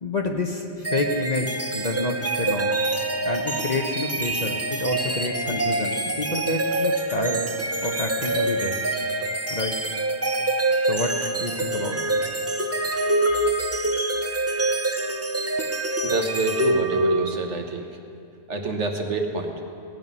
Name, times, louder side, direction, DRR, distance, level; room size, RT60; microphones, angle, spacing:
voice 1, 0.0-2.8 3.2-7.5 7.8-8.8 9.5-9.8 10.9-12.0, left 2 dB, 40° left, 2 dB, 0.9 m, -28 dB
sound 1, 0.8-17.5, right 2 dB, 20° right, 0.4 m, -25 dB
voice 2, 16.0-17.9 18.5-19.5, right 2 dB, 70° right, 3 dB, 1.5 m, -27 dB
17.0 x 9.1 x 5.4 m, 2.4 s
omnidirectional pair, 1.3 m